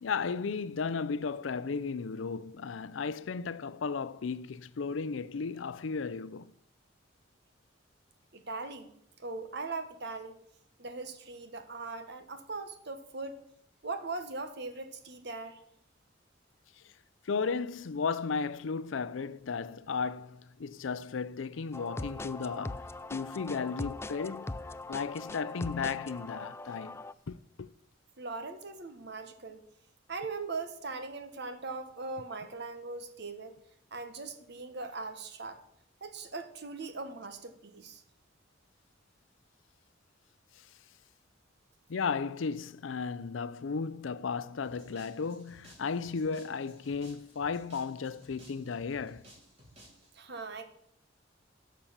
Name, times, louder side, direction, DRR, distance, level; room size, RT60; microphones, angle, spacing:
voice 1, 0.0-6.5 16.8-16.9 17.2-27.7 40.6-40.7 41.9-49.2, left 5 dB, 80° left, 0.5 m, -35 dB
voice 2, 8.3-8.9 9.2-10.4 10.8-13.4 13.8-15.6 28.2-29.6 30.1-33.6 33.9-35.6 36.0-38.0 50.1-50.7, right 3 dB, 60° right, 1.4 m, -40 dB
sound 1, 21.7-27.1, left 2 dB, 15° left, 0.3 m, -41 dB
sound 2, 44.6-50.1, right 1 dB, 35° right, 4.6 m, -57 dB
12.0 x 6.7 x 7.2 m
head